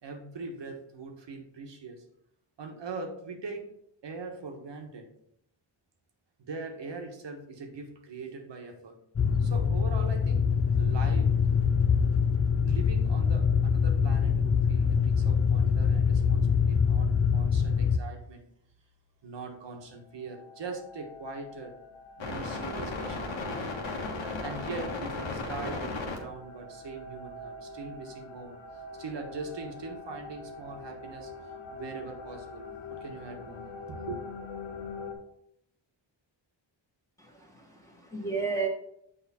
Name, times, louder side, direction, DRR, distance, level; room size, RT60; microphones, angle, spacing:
voice 1, 0.0-2.0 2.6-3.7 4.0-5.1 6.4-9.0 9.4-11.3 12.6-18.4 19.2-21.8 22.2-23.8 24.4-31.3 31.7-34.2, right 3 dB, 65° right, 4 dB, 1.4 m, -41 dB
sound 1, 9.2-18.0, left 6 dB, 30° left, 0.5 m, -24 dB
sound 2, 19.8-19.9 20.1-35.1, left 3 dB, 80° left, 1.6 m, -39 dB
voice 2, 37.3-38.7, right 4 dB, 5° left, -2 dB, 1.4 m, -33 dB
6.9 x 4.8 x 4.3 m, 0.72 s
cardioid pair, 80°, 46 cm